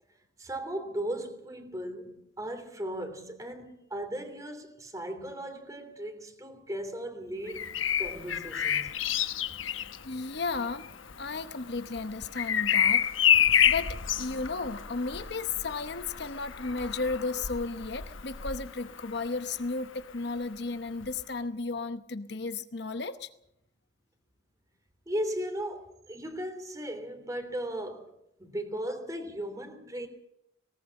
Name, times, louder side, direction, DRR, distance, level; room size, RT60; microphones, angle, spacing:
voice 1, 0.4-8.9 25.1-28.1 28.4-30.1, right 1 dB, 15° right, 3.1 m, -37 dB
Bird vocalization bird call bird song, 7.5-19.3 21.0-21.2, left 9 dB, 90° left, 1.1 m, -29 dB
voice 2, 9.6-10.9 11.2-13.1 13.7-23.3, left 3 dB, 60° left, 0.9 m, -34 dB
20.0 x 19.0 x 7.2 m
head